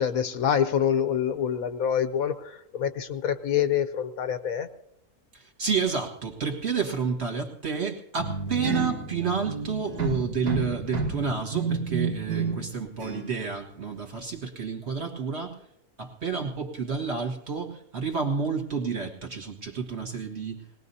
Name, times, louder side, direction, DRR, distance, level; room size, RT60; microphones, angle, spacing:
voice 1, 0.0-4.7, left 8 dB, 70° left, 10 dB, 1.1 m, -26 dB
voice 2, 5.3-15.6 16.0-20.6, right 5 dB, 45° right, 2 dB, 1.9 m, -30 dB
sound 1, 8.2-12.7 13.0-13.3, right 4 dB, 85° right, 2.6 m, -30 dB
22.0 x 19.0 x 2.7 m, 0.80 s
omnidirectional pair, 1.7 m